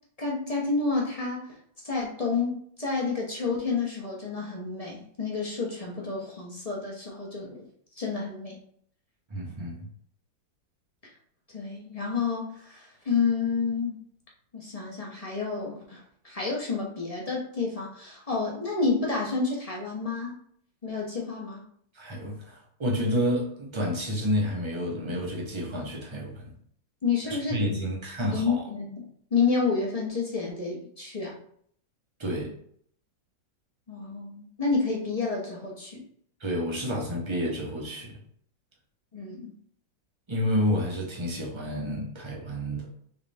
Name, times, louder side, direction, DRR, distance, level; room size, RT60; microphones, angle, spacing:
voice 1, 0.2-1.5 1.8-7.7 8.0-8.6 11.5-14.0 14.5-20.4 20.8-21.6 27.0-27.8 28.3-31.4 33.9-36.0 39.1-39.5, left 4 dB, 30° left, -3 dB, 0.6 m, -30 dB
voice 2, 9.3-9.9 21.9-26.5 27.5-28.6 32.2-32.5 36.4-38.2 40.3-42.9, equal, 25° right, -3 dB, 0.7 m, -29 dB
4.7 x 3.2 x 3.4 m, 0.63 s
omnidirectional pair, 2.1 m